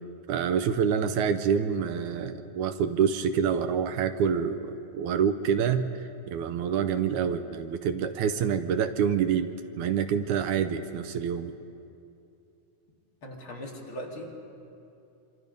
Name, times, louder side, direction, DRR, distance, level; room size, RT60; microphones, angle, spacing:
voice 1, 0.3-5.9 6.3-9.5 9.8-11.5, right 7 dB, 75° right, 9 dB, 2.0 m, -27 dB
voice 2, 13.2-14.4, equal, 40° left, -1 dB, 3.0 m, -40 dB
26.5 x 25.0 x 5.3 m, 2.7 s
omnidirectional pair, 3.9 m